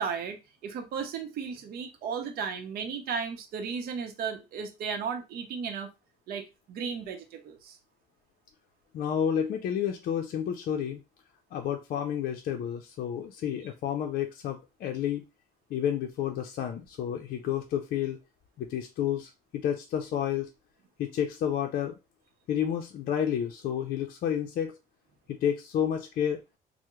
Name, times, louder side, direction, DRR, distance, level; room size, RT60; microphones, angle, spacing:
voice 1, 0.0-5.9 6.3-7.8, right 6 dB, 65° right, 5 dB, 0.7 m, -35 dB
voice 2, 8.9-11.0 11.5-15.2 15.7-18.2 18.6-20.5 21.0-21.9 22.5-24.8 25.3-26.4, left 9 dB, 60° left, 3 dB, 0.5 m, -30 dB
3.4 x 2.0 x 3.0 m, 0.25 s
cardioid pair, 110°, 17 cm